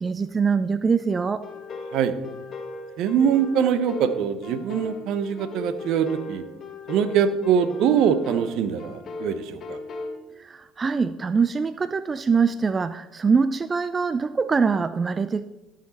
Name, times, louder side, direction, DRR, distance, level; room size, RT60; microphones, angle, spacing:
voice 1, 0.0-1.4 10.4-15.4, right 5 dB, 30° right, 14 dB, 0.4 m, -23 dB
sound 1, 1.4-10.2, left 3 dB, 45° left, 1.4 m, -37 dB
voice 2, 3.0-6.4 6.9-9.8, right 8 dB, 65° right, 12 dB, 0.8 m, -23 dB
13.0 x 6.6 x 4.1 m, 1.0 s
hypercardioid pair, 60°, 0 cm